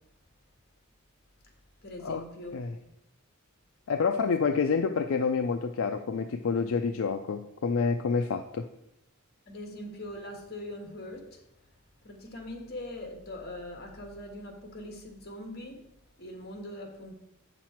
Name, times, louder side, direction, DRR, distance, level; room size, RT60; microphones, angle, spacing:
voice 1, 1.8-2.9 4.2-4.3 9.4-11.4 12.0-15.8 16.2-17.1, left 1 dB, 50° left, 2 dB, 1.7 m, -42 dB
voice 2, 3.9-8.6, left 5 dB, 75° left, 7 dB, 0.4 m, -28 dB
8.1 x 6.0 x 4.4 m, 0.82 s
head